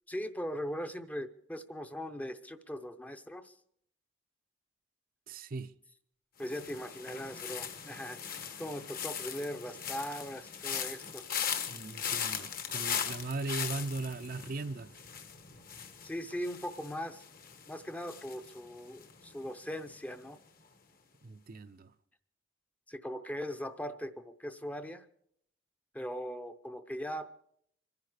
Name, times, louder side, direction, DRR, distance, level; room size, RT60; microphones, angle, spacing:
voice 1, 0.1-3.5 6.4-11.2 16.0-17.2 17.7-20.4 22.9-25.1 25.9-27.3, equal, 10° left, 0.6 m, -40 dB
voice 2, 5.3-5.7 11.7-14.9 21.2-21.9, right 3 dB, 50° right, 0.5 m, -38 dB
sound 1, 6.4-19.5 19.7-20.2, left 8 dB, 50° left, 1.2 m, -39 dB
24.5 x 10.5 x 4.9 m
head